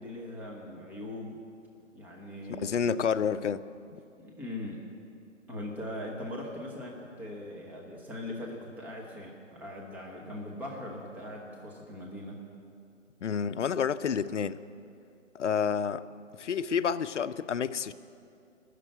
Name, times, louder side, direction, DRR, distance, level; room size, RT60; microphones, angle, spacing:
voice 1, 0.0-1.4 1.9-2.9 4.2-4.9 5.5-12.4, left 1 dB, 5° right, 1.0 m, -40 dB
voice 2, 2.6-3.7 13.2-14.6 15.3-16.0 16.4-17.9, left 7 dB, 70° left, 0.7 m, -29 dB
19.5 x 6.8 x 9.0 m
figure-of-eight pair, 140°, 38 cm